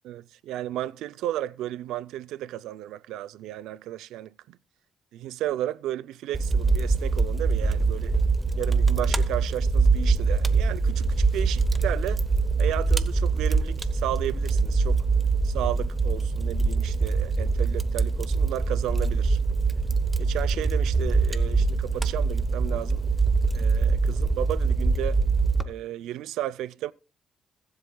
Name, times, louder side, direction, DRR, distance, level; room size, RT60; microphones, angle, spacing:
voice 1, 0.0-4.6 5.1-8.2 8.6-12.3 12.6-15.0 15.4-19.4 20.2-23.0 23.5-25.2 25.6-26.9, right 13 dB, 90° right, 0.5 m, -33 dB
Fire, 6.3-25.6, right 4 dB, 20° right, 1.0 m, -24 dB
21.0 x 8.0 x 2.3 m
cardioid pair, 90°, 0 cm